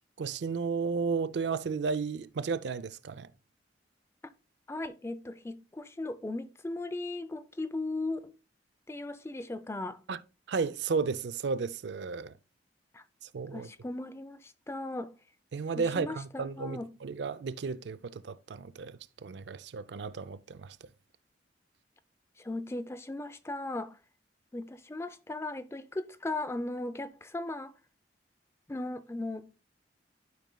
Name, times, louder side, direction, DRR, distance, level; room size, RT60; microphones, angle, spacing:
voice 1, 0.2-3.3 10.1-10.2 10.5-12.3 13.3-13.7 15.5-20.8, right 5 dB, 70° right, 0.4 m, -33 dB
voice 2, 4.7-8.3 8.9-10.0 12.9-13.0 13.5-15.1 15.7-16.9 22.4-24.0 24.5-27.7 28.7-29.5, left 2 dB, 15° left, 0.4 m, -37 dB
12.0 x 5.1 x 2.2 m
head